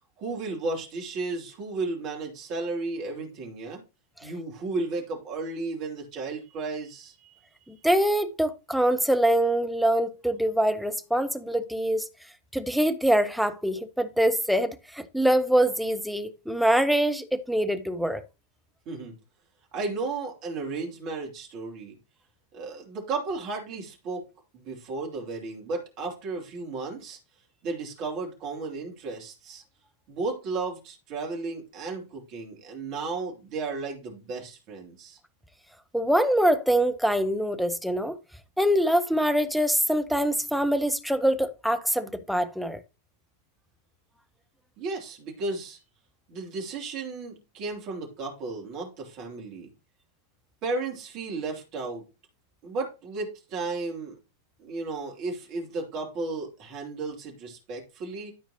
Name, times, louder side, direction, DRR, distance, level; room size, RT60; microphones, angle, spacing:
voice 1, 0.2-3.8 4.2-7.4 18.9-19.1 19.7-22.0 22.5-24.2 24.5-27.2 27.6-29.6 30.1-35.2 44.8-45.8 46.3-49.7 50.6-52.0 52.6-54.2 54.6-58.3, right 3 dB, 40° right, 2.8 m, -34 dB
voice 2, 7.7-12.1 12.5-18.2 35.9-38.2 38.6-42.8, right 1 dB, ahead, 0.7 m, -24 dB
13.0 x 4.4 x 2.8 m
figure-of-eight pair, 90°, 0 cm